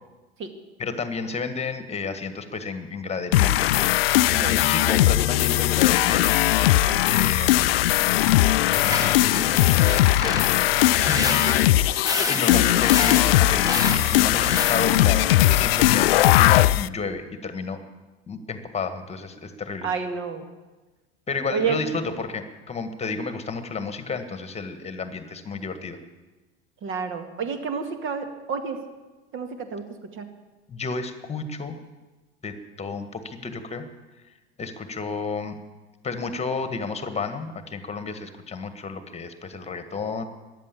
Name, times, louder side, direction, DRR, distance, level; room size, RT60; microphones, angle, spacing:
voice 1, 0.8-6.3 7.0-7.7 8.7-10.7 11.0-17.8 18.3-19.9 21.3-26.0 30.7-31.7 32.4-33.9 34.6-35.5 36.0-40.2, left 4 dB, 20° left, 9 dB, 1.7 m, -32 dB
sound 1, 3.3-16.9, left 15 dB, 60° left, 0.5 m, -19 dB
sound 2, 7.8-15.1, right 1 dB, 10° right, 1.6 m, -33 dB
voice 2, 19.8-20.5 21.5-21.9 26.8-28.8 29.3-30.3, right 6 dB, 40° right, 7 dB, 2.1 m, -30 dB
15.0 x 11.0 x 8.6 m, 1.2 s
figure-of-eight pair, 75°, 32 cm